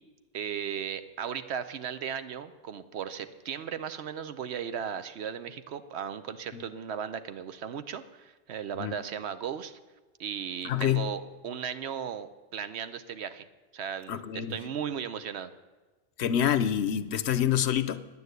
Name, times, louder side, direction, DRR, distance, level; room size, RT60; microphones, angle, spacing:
voice 1, 0.3-9.8 10.2-13.5 13.7-15.5, right 8 dB, 70° right, 11 dB, 0.9 m, -36 dB
voice 2, 10.6-11.1 14.1-14.6 16.2-18.1, left 10 dB, 70° left, 12 dB, 0.9 m, -27 dB
9.7 x 9.3 x 8.0 m, 1.3 s
omnidirectional pair, 1.2 m